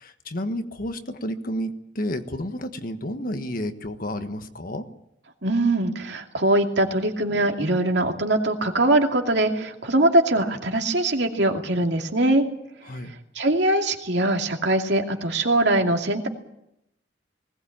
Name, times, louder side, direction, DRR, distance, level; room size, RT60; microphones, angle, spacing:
voice 1, 0.0-4.8 12.9-13.1, equal, 55° left, 8 dB, 1.5 m, -31 dB
voice 2, 5.4-12.5 13.3-16.3, right 1 dB, 70° right, 3 dB, 2.6 m, -22 dB
20.0 x 18.0 x 8.8 m, 0.81 s
head